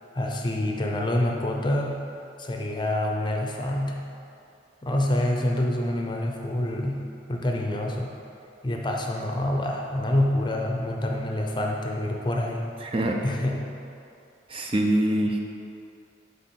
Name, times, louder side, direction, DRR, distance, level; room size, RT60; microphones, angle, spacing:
voice 1, 0.1-2.0 2.4-4.0 4.8-8.1 8.6-12.7 13.2-13.7, left 1 dB, 25° left, 0 dB, 0.6 m, -27 dB
voice 2, 12.8-13.2 14.5-15.4, right 1 dB, 30° right, 1 dB, 0.5 m, -24 dB
7.9 x 3.6 x 6.1 m, 2.6 s
head